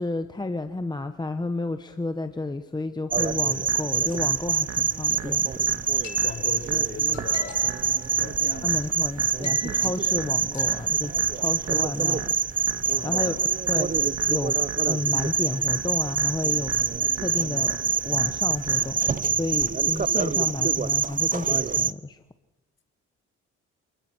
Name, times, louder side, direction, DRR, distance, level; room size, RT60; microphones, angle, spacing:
voice 1, 0.0-5.5 8.6-12.3 13.0-13.9 14.3-14.6 14.8-16.7 17.2-17.8 18.0-22.2, left 2 dB, 15° left, 9 dB, 1.0 m, -31 dB
sound 1, 3.1-21.9, right 6 dB, 25° right, 0.7 m, -25 dB
sound 2, 3.2-19.2, right 7 dB, 65° right, 2.6 m, -41 dB
sound 3, 6.0-6.8 7.0-8.4 8.8-8.9 9.2-10.0 10.5-11.1, left 5 dB, 60° left, 6.1 m, -42 dB
voice 2, 6.2-7.6 8.1-8.8 12.9-13.4, left 4 dB, 40° left, 6 dB, 4.6 m, -39 dB
27.0 x 20.5 x 6.2 m, 1.1 s
cardioid pair, 90°, 30 cm